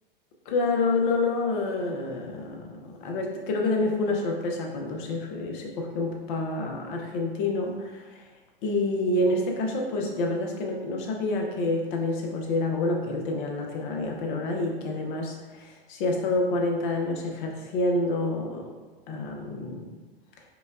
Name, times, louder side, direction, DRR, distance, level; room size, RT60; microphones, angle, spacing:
voice 1, 0.5-8.2 8.6-18.6 19.1-19.9, left 2 dB, 60° left, 1 dB, 0.8 m, -28 dB
5.0 x 2.2 x 2.5 m, 1.3 s
hypercardioid pair, 105°, 29 cm